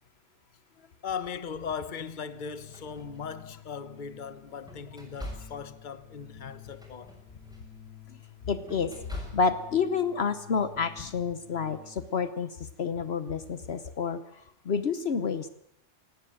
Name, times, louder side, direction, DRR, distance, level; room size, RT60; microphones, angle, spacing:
voice 1, 1.0-7.2 11.0-11.1, left 6 dB, 45° left, 1.2 m, -38 dB
Organ, 1.9-12.2, left 10 dB, 35° right, 6.0 m, -51 dB
sound 1, 2.6-3.8 4.2-9.8, equal, 5° right, 7.2 m, -45 dB
voice 2, 8.4-15.5, left 5 dB, 65° left, 1.2 m, -29 dB
18.0 x 17.5 x 9.2 m
omnidirectional pair, 1.2 m